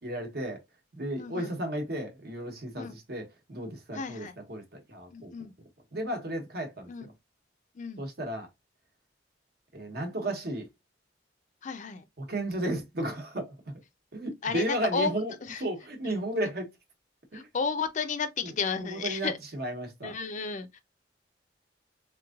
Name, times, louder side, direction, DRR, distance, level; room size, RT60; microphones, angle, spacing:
voice 1, 0.0-0.6 0.9-5.5 5.9-7.1 8.0-8.5 9.7-10.7 12.2-13.7 14.1-15.3 15.6-16.7 17.3-17.5 18.4-18.5 18.8-20.2, right 1 dB, 65° right, 1.0 m, -34 dB
voice 2, 1.2-1.5 2.8-3.0 3.9-4.3 5.1-5.5 6.9-7.1 7.7-8.0 11.6-12.0 14.4-15.6 17.3-19.4 20.0-20.8, left 5 dB, 45° left, 0.5 m, -33 dB
3.6 x 3.0 x 2.3 m
head